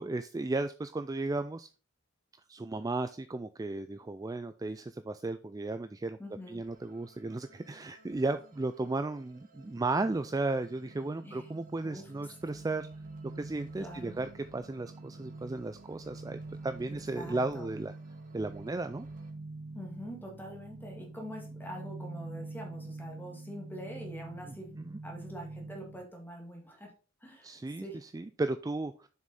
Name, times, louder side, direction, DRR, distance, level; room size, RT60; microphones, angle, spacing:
voice 1, 0.0-1.7 2.5-6.2 6.5-12.9 13.4-17.9 18.3-19.1 24.8-25.0 27.4-29.1, right 2 dB, 20° right, 10 dB, 0.3 m, -35 dB
voice 2, 6.2-6.6 11.2-11.5 11.8-12.1 13.8-14.2 17.1-17.7 19.7-26.9 27.2-27.5 27.8-28.0, equal, 10° left, 0 dB, 2.3 m, -45 dB
sound 1, 6.6-19.3, right 2 dB, 45° right, 1.6 m, -61 dB
sound 2, 10.0-26.1, right 2 dB, 60° right, 0.7 m, -46 dB
7.2 x 6.2 x 4.2 m, 0.34 s
head